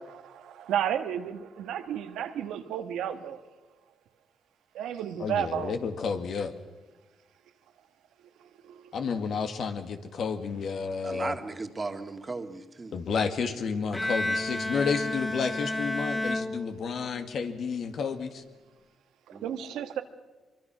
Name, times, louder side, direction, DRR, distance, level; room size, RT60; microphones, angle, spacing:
voice 1, 0.0-3.4 4.7-5.7 8.4-8.9 19.4-20.0, right 9 dB, 90° right, 8 dB, 1.5 m, -32 dB
voice 2, 5.2-6.5 8.9-11.4 12.9-18.4, left 5 dB, 65° left, 7 dB, 2.1 m, -31 dB
voice 3, 11.0-13.0 19.3-19.5, right 3 dB, 30° right, 7 dB, 2.1 m, -36 dB
Bowed string instrument, 13.9-17.3, left 1 dB, 15° left, 0.9 m, -31 dB
24.0 x 23.5 x 6.2 m, 1.2 s
cardioid pair, 80°, 0 cm